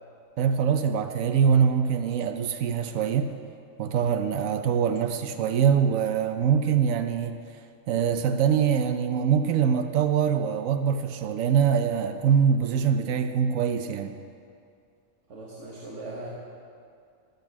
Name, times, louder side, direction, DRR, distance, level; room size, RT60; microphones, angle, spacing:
voice 1, 0.4-3.3 3.8-7.4 7.9-14.1, right 7 dB, 90° right, 8 dB, 1.0 m, -23 dB
voice 2, 15.3-16.3, right 2 dB, 65° right, -3 dB, 1.5 m, -39 dB
13.0 x 5.2 x 7.4 m, 2.4 s
omnidirectional pair, 1.3 m